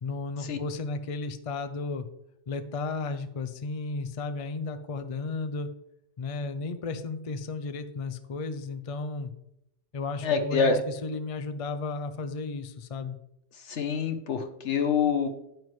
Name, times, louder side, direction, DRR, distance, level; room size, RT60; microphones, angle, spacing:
voice 1, 0.0-2.1 2.5-5.7 6.2-9.3 9.9-13.2, left 3 dB, 40° left, 9 dB, 0.6 m, -34 dB
voice 2, 10.2-10.8 13.7-15.3, left 5 dB, 80° left, 7 dB, 1.3 m, -26 dB
9.2 x 9.2 x 3.2 m, 0.80 s
omnidirectional pair, 1.2 m